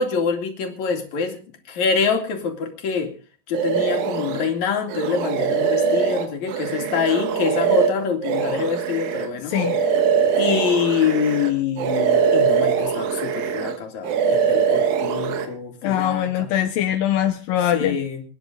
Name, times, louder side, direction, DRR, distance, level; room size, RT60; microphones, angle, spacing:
voice 1, 0.0-1.4 1.7-3.1 3.5-9.5 10.4-16.5 17.7-18.2, left 6 dB, 55° left, 4 dB, 3.7 m, -25 dB
sound 1, 3.5-4.5 4.9-11.5 11.8-13.8 14.0-15.5, right 7 dB, 85° right, 3.2 m, -22 dB
voice 2, 15.8-18.0, left 11 dB, 80° left, 6 dB, 2.7 m, -22 dB
24.5 x 10.5 x 3.9 m, 0.40 s
omnidirectional pair, 4.0 m